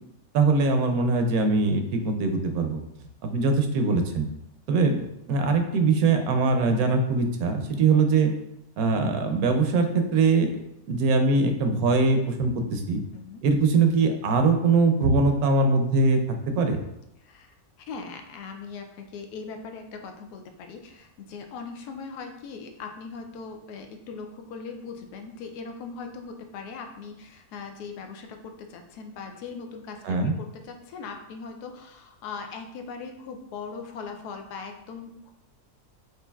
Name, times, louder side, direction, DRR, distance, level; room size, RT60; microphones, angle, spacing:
voice 1, 0.3-2.8 3.2-4.3 4.7-8.3 8.8-10.6 10.9-13.0 13.4-16.2 16.5-16.8 30.0-30.4, right 3 dB, 75° right, 5 dB, 1.0 m, -22 dB
voice 2, 13.1-13.4 17.2-17.5 17.9-35.3, left 5 dB, 90° left, 4 dB, 1.1 m, -40 dB
6.3 x 2.6 x 2.3 m, 0.83 s
omnidirectional pair, 1.6 m